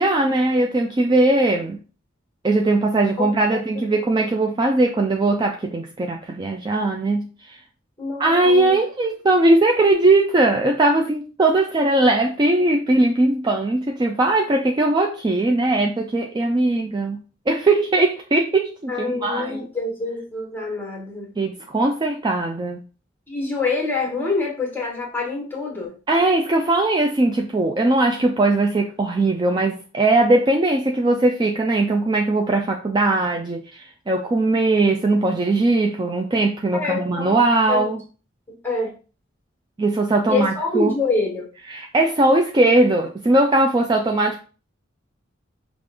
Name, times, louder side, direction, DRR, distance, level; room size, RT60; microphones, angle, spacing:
voice 1, 0.0-1.8 2.4-7.3 8.2-17.2 17.5-19.7 21.4-22.8 26.1-38.0 39.8-40.9 41.7-44.4, right 2 dB, 20° right, 0.3 m, -19 dB
voice 2, 3.2-3.6 4.2-4.3 8.0-8.8 18.9-21.3 23.3-25.9 36.7-37.3 37.7-37.9 38.6-38.9 40.3-41.4, left 3 dB, 10° left, 1.3 m, -26 dB
5.2 x 2.5 x 3.3 m
head